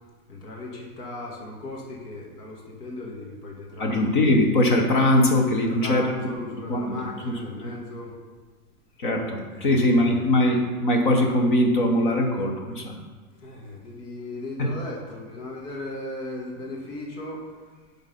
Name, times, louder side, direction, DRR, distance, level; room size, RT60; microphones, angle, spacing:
voice 1, 0.3-4.1 5.6-8.1 9.5-10.4 13.4-17.6, left 2 dB, 85° left, -2 dB, 2.0 m, -37 dB
voice 2, 3.8-6.0 6.7-7.0 7.3-7.4 7.6-7.7 9.0-12.9 14.6-14.7, left 1 dB, 35° left, 2 dB, 0.8 m, -21 dB
7.4 x 4.0 x 5.4 m, 1.4 s
supercardioid pair, 180°, 45 cm